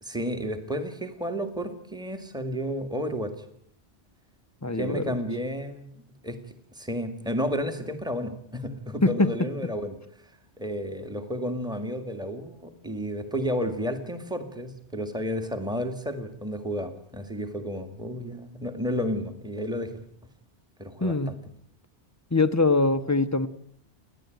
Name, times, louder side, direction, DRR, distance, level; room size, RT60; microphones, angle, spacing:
voice 1, 0.0-3.3 4.7-6.0 6.2-6.4 6.7-9.9 10.6-19.9 20.8-21.4, equal, 5° right, 7 dB, 1.9 m, -32 dB
voice 2, 4.6-5.2 9.0-9.3 21.0-21.4 22.3-23.5, left 3 dB, 15° left, 12 dB, 0.8 m, -23 dB
29.5 x 11.0 x 9.2 m, 0.70 s
omnidirectional pair, 1.2 m